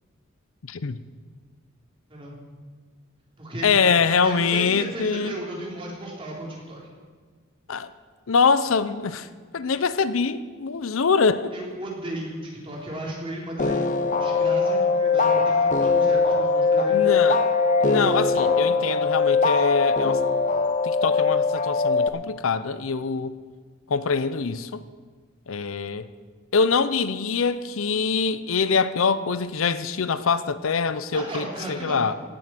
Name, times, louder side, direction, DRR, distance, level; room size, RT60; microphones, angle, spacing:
voice 1, 0.7-1.0 3.6-5.3 7.7-7.9 8.3-9.3 9.5-11.5 16.9-17.4 17.8-20.2 20.8-23.3 23.9-24.8 25.5-26.1 26.5-32.1, left 5 dB, 80° left, 0.6 m, -24 dB
voice 2, 3.4-3.7 4.2-6.8 11.5-13.9 14.2-17.2 31.1-32.1, right 1 dB, 25° right, 3.7 m, -35 dB
sound 1, 13.6-22.1, left 4 dB, 35° left, 0.8 m, -21 dB
17.5 x 7.7 x 7.6 m
head